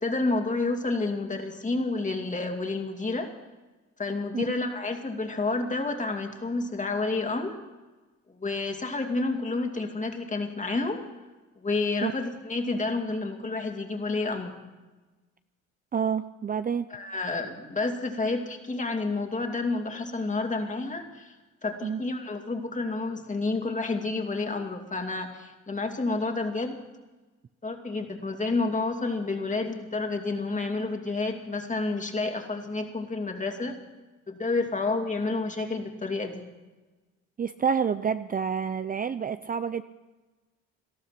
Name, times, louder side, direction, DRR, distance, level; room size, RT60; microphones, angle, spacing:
voice 1, 0.0-3.3 4.0-7.6 8.3-11.1 11.6-14.6 16.9-21.3 21.6-26.8 27.6-33.8 34.3-36.5, left 3 dB, 25° left, 4 dB, 2.5 m, -30 dB
voice 2, 15.9-16.9 21.8-22.0 37.4-39.8, right 7 dB, 30° right, 11 dB, 0.5 m, -28 dB
19.0 x 13.0 x 5.9 m, 1.2 s
cardioid pair, 90°, 30 cm